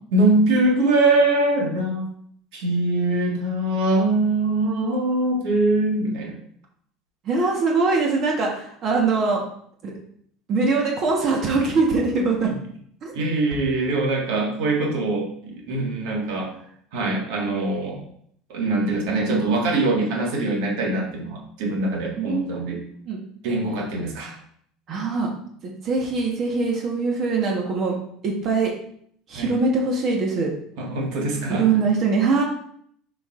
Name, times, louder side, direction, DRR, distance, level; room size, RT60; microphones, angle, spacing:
voice 1, 0.1-2.1 2.5-6.3 13.1-16.5 16.9-18.0 18.5-22.8 23.4-24.4 29.3-29.6 30.8-31.7, right 2 dB, 75° right, -1 dB, 1.8 m, -22 dB
voice 2, 7.2-9.4 9.8-9.9 10.5-12.5 13.0-13.1 14.8-14.9 22.2-23.2 24.9-25.3 25.6-28.0 28.2-28.7 29.3-30.5 31.3-32.4, right 4 dB, 40° right, 0 dB, 1.3 m, -22 dB
7.0 x 5.3 x 2.6 m, 0.65 s
supercardioid pair, 125°, 0 cm